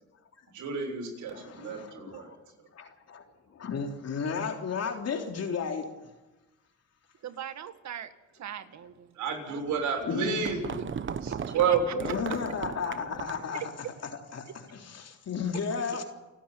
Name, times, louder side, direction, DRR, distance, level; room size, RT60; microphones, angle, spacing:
voice 1, 0.5-2.4 9.1-10.6 11.2-12.1, right 6 dB, 85° right, 6.7 m, -30 dB
voice 2, 1.3-2.4 2.7-6.0 10.0-10.9 12.0-13.6 14.3-16.0, left 6 dB, 55° left, 3.6 m, -34 dB
voice 3, 7.2-9.2 9.5-9.8 11.2-11.3 11.7-11.8 13.5-13.7, right 10 dB, 65° right, 1.7 m, -40 dB
sound 1, 9.8-13.5, right 7 dB, 40° right, 1.1 m, -37 dB
29.5 x 10.5 x 9.2 m
cardioid pair, 90°, 30 cm